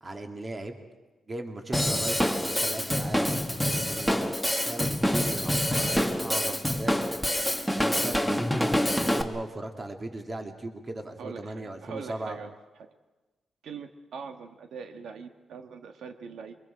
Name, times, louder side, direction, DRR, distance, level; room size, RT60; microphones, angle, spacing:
voice 1, 0.0-0.8 1.3-4.3 4.6-6.9 7.7-12.4, right 2 dB, 25° right, 4 dB, 2.1 m, -38 dB
Drum kit / Drum, 1.7-9.2, equal, ahead, 1.2 m, -26 dB
voice 2, 11.2-12.9 13.6-16.5, right 5 dB, 80° right, 6 dB, 1.4 m, -42 dB
29.0 x 23.5 x 5.0 m, 1.2 s
wide cardioid pair, 150°, 0 cm